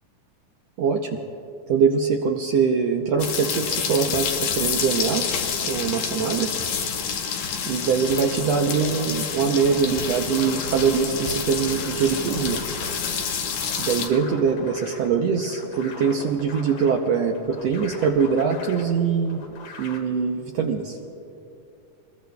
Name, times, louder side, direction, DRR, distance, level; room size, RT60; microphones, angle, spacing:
voice 1, 0.8-1.2 1.7-5.3 5.6-6.5 7.7-12.6 13.8-19.4 19.8-21.0, right 6 dB, 80° right, 2 dB, 1.5 m, -23 dB
sound 1, 3.2-14.1, left 6 dB, 80° left, 2.9 m, -28 dB
sound 2, 9.8-20.0, left 3 dB, 65° left, 2.7 m, -41 dB
26.5 x 21.0 x 2.3 m, 2.7 s
omnidirectional pair, 3.9 m